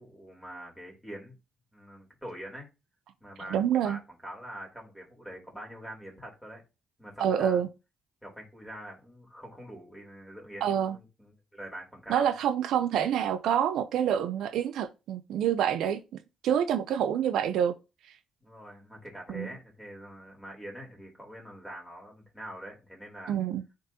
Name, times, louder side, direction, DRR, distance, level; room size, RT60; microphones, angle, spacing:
voice 1, 0.0-1.3 1.7-2.7 3.2-6.6 7.0-7.6 8.2-12.3 18.4-23.3, equal, ahead, 3.1 m, -44 dB
voice 2, 3.5-4.0 7.2-7.7 10.6-11.0 12.1-16.0 16.4-17.7 19.3-19.5 23.3-23.6, right 9 dB, 80° right, 0.5 m, -27 dB
9.4 x 3.9 x 2.8 m
cardioid pair, 90°, 0 cm